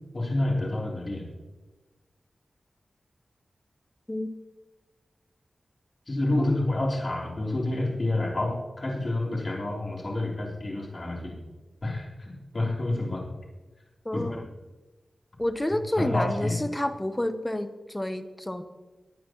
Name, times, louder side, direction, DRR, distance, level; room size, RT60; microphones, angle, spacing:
voice 1, 0.1-1.3 6.1-11.4 11.8-13.2 14.1-14.4 16.0-16.6, left 2 dB, 40° left, -2 dB, 3.4 m, -28 dB
voice 2, 14.0-14.5 15.4-18.6, left 1 dB, 15° left, 10 dB, 0.9 m, -29 dB
20.0 x 9.3 x 3.0 m, 1.2 s
wide cardioid pair, 105°, 0 cm